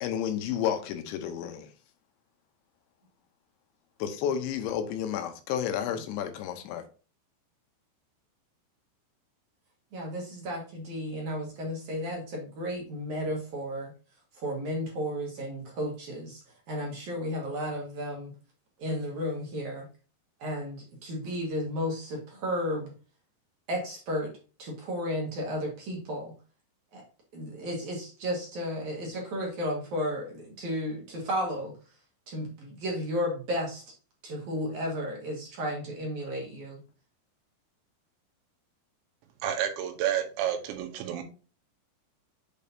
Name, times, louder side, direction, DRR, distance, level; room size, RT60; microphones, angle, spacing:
voice 1, 0.0-1.7 4.0-6.8, left 9 dB, 85° left, 3.1 m, -31 dB
voice 2, 9.9-13.9 14.3-18.3 18.8-19.9 20.4-22.9 23.7-24.3 24.6-26.3 26.9-27.0 27.3-31.7 32.3-33.8 34.2-36.8, equal, 60° right, 2.2 m, -33 dB
voice 3, 39.4-41.2, right 10 dB, 85° right, 3.3 m, -30 dB
7.6 x 5.2 x 2.8 m
omnidirectional pair, 5.1 m